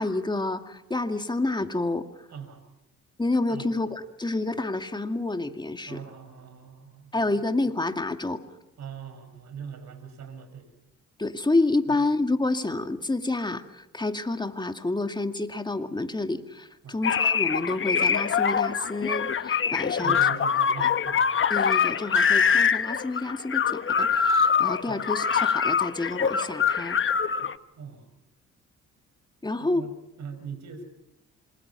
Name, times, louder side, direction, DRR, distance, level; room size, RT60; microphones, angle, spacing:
voice 1, 0.0-2.1 3.2-6.0 7.1-8.4 11.2-20.2 20.8-20.9 21.5-27.0 29.4-29.9, left 2 dB, 15° left, 7 dB, 2.3 m, -29 dB
voice 2, 2.3-2.6 3.5-3.7 5.9-7.1 8.8-10.7 11.9-12.0 16.8-17.0 20.0-21.3 24.9-25.1 27.4-27.5 27.8-28.1 29.6-29.9 30.2-30.8, right 7 dB, 65° right, 9 dB, 6.0 m, -41 dB
sound 1, 17.0-27.5, left 7 dB, 40° left, 1.3 m, -24 dB
27.0 x 25.5 x 5.9 m, 0.92 s
cardioid pair, 90°, 30 cm